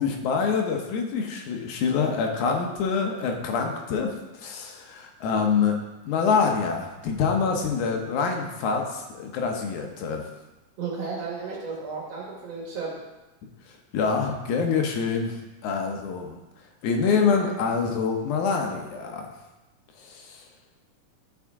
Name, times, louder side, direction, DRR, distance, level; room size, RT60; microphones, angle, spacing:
voice 1, 0.0-5.8 6.1-10.2 13.9-15.4 15.6-16.4 16.8-19.3 20.1-20.4, left 5 dB, 80° left, 2 dB, 2.3 m, -26 dB
voice 2, 10.8-13.0, right 4 dB, 60° right, -4 dB, 2.5 m, -33 dB
12.0 x 4.8 x 3.6 m, 1.1 s
omnidirectional pair, 3.5 m